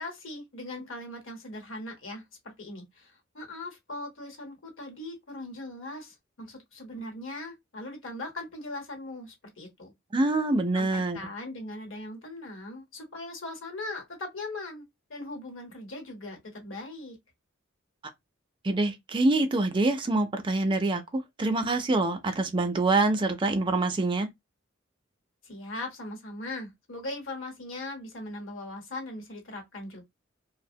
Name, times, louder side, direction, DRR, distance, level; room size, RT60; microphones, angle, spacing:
voice 1, 0.0-2.2 2.6-9.9 10.7-17.2 25.4-30.0, left 2 dB, 75° left, 1.0 m, -40 dB
voice 2, 10.1-11.2 18.6-24.3, right 2 dB, 25° right, 0.4 m, -25 dB
2.4 x 2.0 x 2.6 m
head